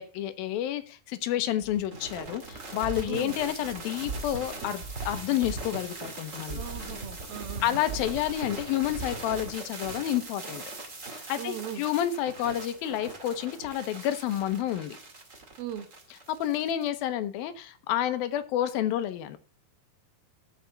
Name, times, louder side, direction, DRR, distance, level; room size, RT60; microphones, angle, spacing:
voice 1, 0.0-6.6 7.6-10.6 11.1-15.0 16.3-19.4, left 12 dB, 80° left, 2.6 m, -30 dB
sound 1, 1.6-16.9, right 3 dB, 30° right, 1.7 m, -39 dB
voice 2, 3.0-3.4 6.5-7.8 11.4-11.8 15.6-15.9, right 10 dB, 75° right, 3.0 m, -38 dB
14.5 x 5.7 x 3.9 m
omnidirectional pair, 4.3 m